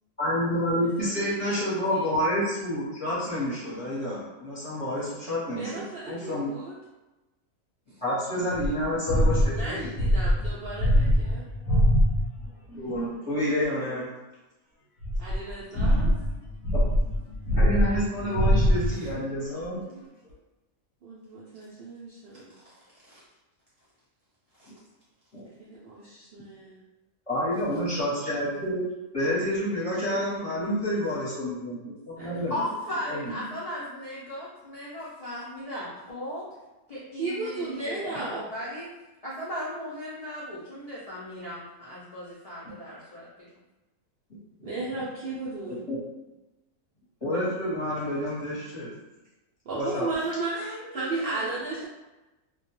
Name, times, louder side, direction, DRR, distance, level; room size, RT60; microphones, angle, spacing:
voice 1, 0.2-6.5 8.0-9.9 12.7-14.1 17.5-19.8 25.3-25.5 27.3-28.8 29.1-32.5 33.1-33.4 44.6-44.8 45.9-46.0 47.2-48.9 49.7-50.1, equal, 30° left, -10 dB, 0.8 m, -29 dB
voice 2, 1.0-2.1 5.5-6.8 9.4-11.5 15.2-16.1 21.0-22.5 25.6-26.8 32.2-32.6 37.1-38.4 44.6-45.8 49.7-51.9, right 3 dB, 65° right, -8 dB, 0.6 m, -35 dB
sound 1, 8.5-12.5 13.1-13.2 15.0-19.2, equal, 90° left, 1.0 m, -23 dB
voice 3, 19.8-20.3 23.1-23.2 24.6-24.7 32.5-36.4 36.9-38.9 39.2-43.5 50.3-51.6, left 1 dB, 60° left, -9 dB, 0.4 m, -37 dB
2.2 x 2.2 x 3.0 m, 1.1 s
omnidirectional pair, 1.4 m